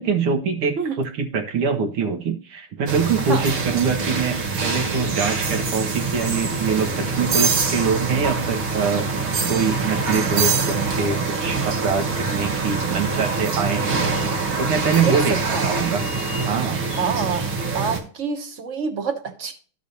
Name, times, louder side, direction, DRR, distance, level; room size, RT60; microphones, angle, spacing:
voice 1, 0.0-9.1 9.5-14.0 14.6-16.0 16.5-16.8, right 5 dB, 85° right, 4 dB, 2.3 m, -24 dB
sound 1, 2.9-18.0, right 4 dB, 70° right, 2.6 m, -24 dB
voice 2, 15.0-15.9 16.9-17.5 17.7-19.5, right 5 dB, 40° right, 6 dB, 1.3 m, -27 dB
14.0 x 5.0 x 2.7 m, 0.40 s
omnidirectional pair, 2.3 m